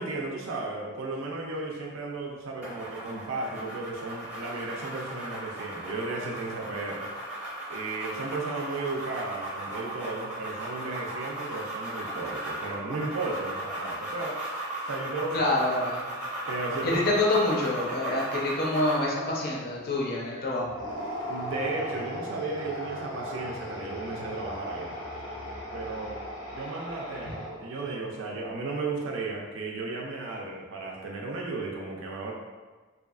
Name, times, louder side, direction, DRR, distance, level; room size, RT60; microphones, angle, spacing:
voice 1, 0.0-7.1 7.7-14.4 14.9-15.5 16.5-17.2 21.3-24.9 25.7-26.2 26.5-32.3, right 3 dB, 70° right, -1 dB, 0.4 m, -34 dB
sound 1, 2.6-19.1, right 1 dB, 5° right, 0.6 m, -36 dB
voice 2, 15.3-16.0 16.8-20.8, left 2 dB, 45° left, -3 dB, 0.4 m, -27 dB
sound 2, 20.6-27.8, equal, 90° left, 0.7 m, -37 dB
2.7 x 2.3 x 2.3 m, 1.3 s
head